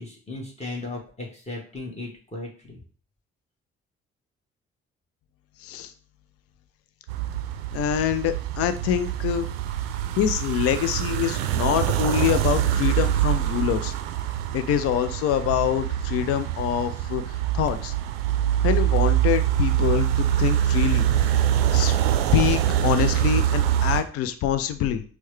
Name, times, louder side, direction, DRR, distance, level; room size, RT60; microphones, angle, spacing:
voice 1, 0.0-2.8, left 2 dB, 20° left, -2 dB, 1.2 m, -36 dB
sound 1, 7.1-24.0, right 12 dB, 70° right, 0.5 m, -24 dB
voice 2, 7.7-9.5 10.1-13.9 14.5-17.2 17.5-17.9 18.6-21.1 21.7-22.0 22.3-25.0, left 10 dB, 50° left, 11 dB, 0.5 m, -25 dB
4.4 x 2.2 x 3.1 m, 0.41 s
figure-of-eight pair, 45°, 31 cm